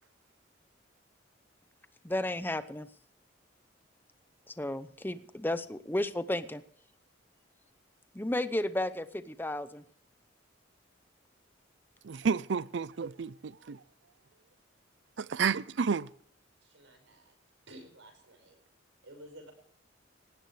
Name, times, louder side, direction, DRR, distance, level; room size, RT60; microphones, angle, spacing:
voice 1, 2.0-2.9 4.5-6.6 8.1-9.8, left 1 dB, 10° left, 0.7 m, -33 dB
voice 2, 12.0-13.8 15.2-16.1, right 5 dB, 65° right, 0.5 m, -31 dB
voice 3, 16.6-17.4 17.7-18.6 19.0-19.5, right 1 dB, 80° right, 5.4 m, -52 dB
18.5 x 17.0 x 3.3 m
head